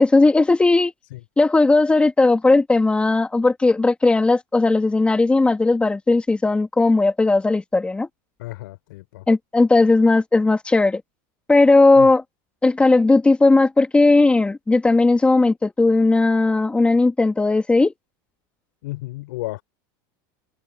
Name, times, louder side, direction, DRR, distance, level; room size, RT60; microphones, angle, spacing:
voice 1, 0.0-0.9 1.4-8.1 9.3-11.0 11.5-12.2 12.6-17.9, left 3 dB, 10° left, 2.3 m, -17 dB
voice 2, 8.4-9.2 12.0-12.1 18.8-19.6, left 19 dB, 85° left, 6.3 m, -33 dB
supercardioid pair, 135°, 10 cm